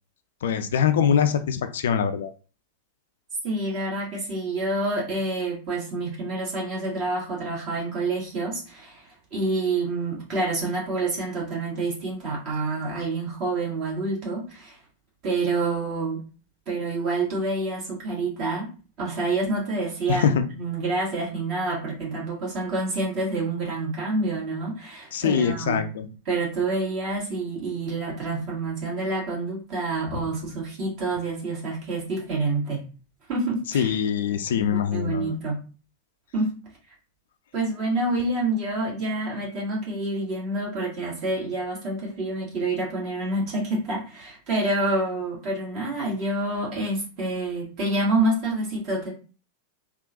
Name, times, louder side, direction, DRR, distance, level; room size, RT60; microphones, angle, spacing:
voice 1, 0.4-2.3 20.1-20.4 25.1-26.1 33.7-35.3, left 7 dB, 60° left, 9 dB, 0.3 m, -23 dB
voice 2, 3.4-14.8 15.2-16.2 16.7-18.7 19.0-25.8 26.3-32.8 33.3-33.9 34.5-35.6 36.3-36.5 37.5-49.1, right 2 dB, 40° right, -4 dB, 1.7 m, -28 dB
3.6 x 2.3 x 2.6 m, 0.36 s
figure-of-eight pair, 90°, 0 cm